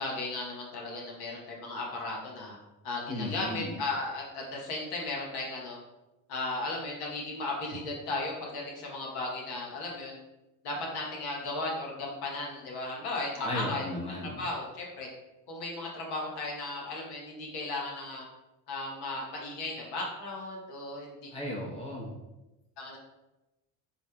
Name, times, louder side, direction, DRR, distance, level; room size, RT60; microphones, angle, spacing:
voice 1, 0.0-2.6 2.8-5.8 6.3-10.2 10.6-13.9 14.2-15.1 15.5-18.2 18.7-21.1 22.8-23.0, left 2 dB, 70° left, -2 dB, 1.2 m, -35 dB
voice 2, 3.1-3.8 13.4-14.4 21.3-22.1, left 1 dB, 15° left, -2 dB, 0.9 m, -35 dB
4.2 x 3.1 x 2.3 m, 1.0 s
supercardioid pair, 85°, 40 cm